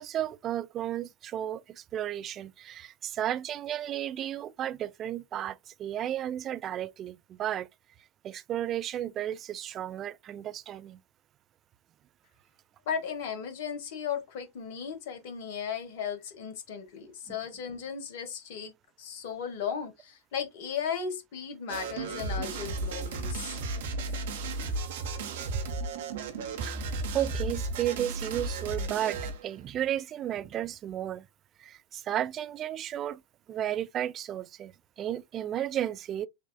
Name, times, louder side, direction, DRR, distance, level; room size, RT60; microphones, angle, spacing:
voice 1, 0.0-7.7 8.2-11.0 17.3-17.4 25.5-25.6 26.6-26.8 27.1-31.3 31.6-33.2 33.5-36.3, right 11 dB, 30° right, 0.3 m, -33 dB
voice 2, 12.9-18.7 19.0-23.6, left 7 dB, 50° left, 1.0 m, -36 dB
sound 1, 21.7-29.5, right 3 dB, 55° right, 0.9 m, -34 dB
6.2 x 2.4 x 2.3 m
figure-of-eight pair, 90°, 0 cm